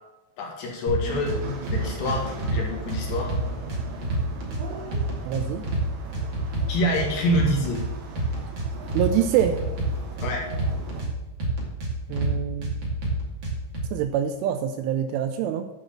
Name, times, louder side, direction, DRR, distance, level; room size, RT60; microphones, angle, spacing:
voice 1, 0.4-1.4 1.7-3.4 6.7-7.8 10.2-10.4, left 1 dB, 65° left, -1 dB, 3.4 m, -26 dB
sound 1, 0.9-1.4 1.7-2.6 2.9-4.6 4.9-5.8 6.1-7.9 8.1-9.1 9.4-11.1 11.4-12.3 12.6-13.8, right 3 dB, 40° right, 1.7 m, -27 dB
sound 2, 1.0-11.0, right 2 dB, 65° right, 3.9 m, -39 dB
voice 2, 5.3-5.7 8.9-9.6 12.1-12.8 13.9-15.7, right 9 dB, 85° right, 8 dB, 2.9 m, -25 dB
10.5 x 4.7 x 7.3 m, 1.1 s
omnidirectional pair, 6.0 m